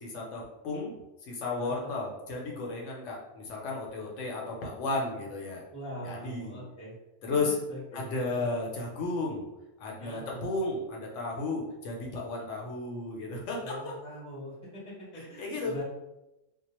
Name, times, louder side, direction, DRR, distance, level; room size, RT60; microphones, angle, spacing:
voice 1, 0.0-0.9 1.3-5.6 6.0-6.6 7.2-7.6 7.9-9.5 9.8-13.7 15.1-15.7, left 3 dB, 75° left, -1 dB, 0.9 m, -34 dB
voice 2, 1.6-1.9 5.7-6.9 7.3-8.5 10.0-10.4 13.6-15.8, equal, 5° left, -7 dB, 0.6 m, -43 dB
2.2 x 2.0 x 2.9 m, 0.95 s
omnidirectional pair, 1.3 m